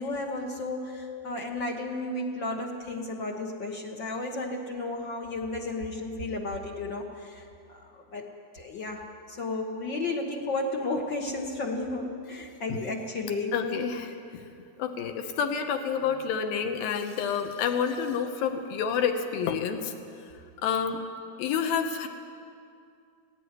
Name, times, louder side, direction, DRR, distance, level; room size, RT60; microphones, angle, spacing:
voice 1, 0.0-13.8 17.9-18.0, left 2 dB, 65° left, 1 dB, 1.1 m, -33 dB
voice 2, 13.5-14.5 14.8-19.9 20.6-21.0 21.4-22.1, left 7 dB, 80° left, 6 dB, 2.9 m, -29 dB
18.0 x 16.0 x 9.6 m, 2.4 s
omnidirectional pair, 4.2 m